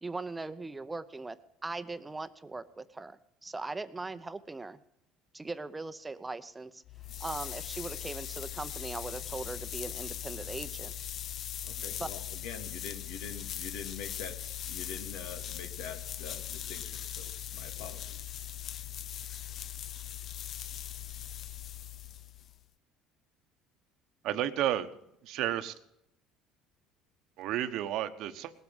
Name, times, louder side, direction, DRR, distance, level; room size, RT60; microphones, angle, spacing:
voice 1, 0.0-1.4 1.6-4.8 5.3-6.8 7.2-10.9 12.0-12.1, right 3 dB, 15° right, 12 dB, 0.8 m, -39 dB
sound 1, 6.8-22.6, left 11 dB, 50° left, 0.6 m, -40 dB
voice 2, 11.6-18.3, left 6 dB, 85° left, 6 dB, 2.1 m, -45 dB
voice 3, 24.2-24.9 25.2-25.7 27.4-28.5, right 12 dB, 65° right, 10 dB, 1.1 m, -31 dB
19.0 x 8.2 x 7.2 m, 0.80 s
cardioid pair, 115°, 0 cm